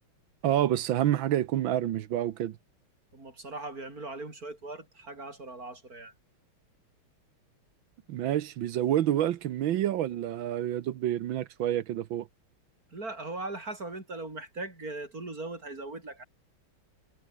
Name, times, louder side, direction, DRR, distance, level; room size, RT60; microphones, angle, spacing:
voice 1, 0.4-2.6 8.1-12.3, right 12 dB, 70° right, 1.6 m, -28 dB
voice 2, 3.1-6.1 12.9-16.2, right 2 dB, 40° right, 5.4 m, -39 dB
omnidirectional pair, 2.4 m